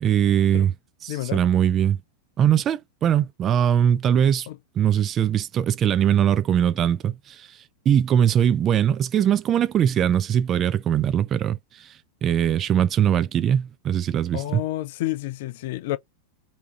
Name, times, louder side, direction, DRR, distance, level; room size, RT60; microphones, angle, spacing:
voice 1, 0.0-0.7 1.0-2.0 2.4-4.5 4.8-7.6 7.9-11.9 12.2-14.6, right 9 dB, 30° right, 0.4 m, -21 dB
voice 2, 1.1-1.4 4.5-4.6 14.3-16.0, left 15 dB, 50° left, 0.3 m, -29 dB
3.4 x 2.7 x 2.4 m
figure-of-eight pair, 90°, 0 cm